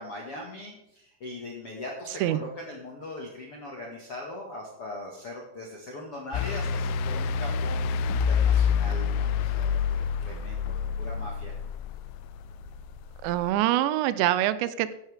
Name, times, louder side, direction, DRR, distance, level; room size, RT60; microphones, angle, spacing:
voice 1, 0.0-11.5, left 1 dB, 50° left, -2 dB, 1.8 m, -40 dB
sound 1, 6.3-13.5, left 6 dB, 85° left, 2.9 m, -27 dB
voice 2, 13.2-14.9, right 13 dB, 90° right, 14 dB, 2.9 m, -25 dB
15.0 x 11.0 x 3.5 m, 0.82 s
omnidirectional pair, 5.0 m